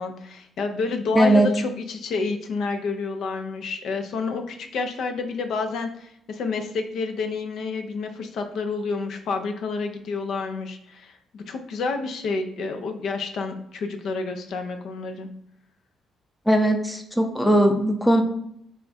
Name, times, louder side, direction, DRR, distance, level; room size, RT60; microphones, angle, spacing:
voice 1, 0.0-15.3, left 4 dB, 70° left, 6 dB, 0.4 m, -29 dB
voice 2, 1.1-1.5 16.5-18.2, right 1 dB, 5° left, 5 dB, 0.5 m, -19 dB
3.4 x 2.3 x 4.0 m, 0.72 s
cardioid pair, 90°, 0 cm